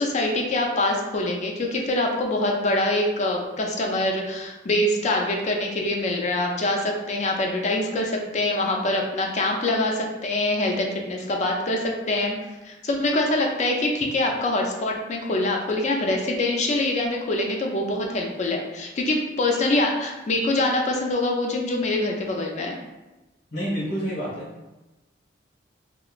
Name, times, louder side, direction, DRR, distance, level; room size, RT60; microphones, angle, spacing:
voice 1, 0.0-12.3 12.6-22.7, left 2 dB, 40° left, 1 dB, 0.4 m, -24 dB
voice 2, 23.5-24.7, equal, 85° left, -9 dB, 1.1 m, -29 dB
3.0 x 2.4 x 2.4 m, 1.1 s
head